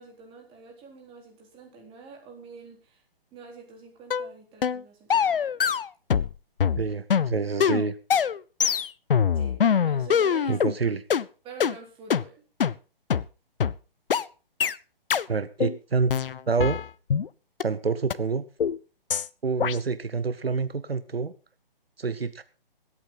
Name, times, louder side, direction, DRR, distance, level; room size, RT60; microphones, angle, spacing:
voice 1, 0.0-3.0 3.3-5.4 9.3-10.6 11.4-12.4, right 5 dB, 20° right, 0 dB, 4.0 m, -47 dB
sound 1, 4.1-4.3 4.6-4.8 5.1-6.3 6.6-10.7 11.1-11.2 11.6-11.7 12.1-12.2 12.6-12.7 13.1-13.2 13.6-13.7 14.1-14.2 14.6-14.8 15.1-15.3 15.6-15.8 16.1-17.3 17.6-17.7 18.1-18.2 18.6-18.8 19.1-19.3 19.6-19.8, left 7 dB, 70° left, 0.6 m, -23 dB
voice 2, 6.8-8.0 10.5-11.0 15.3-16.1 16.5-16.8 17.6-18.4 19.4-21.3 22.0-22.4, right 4 dB, 85° right, 14 dB, 1.0 m, -27 dB
22.0 x 8.8 x 3.9 m, 0.35 s
figure-of-eight pair, 135°, 29 cm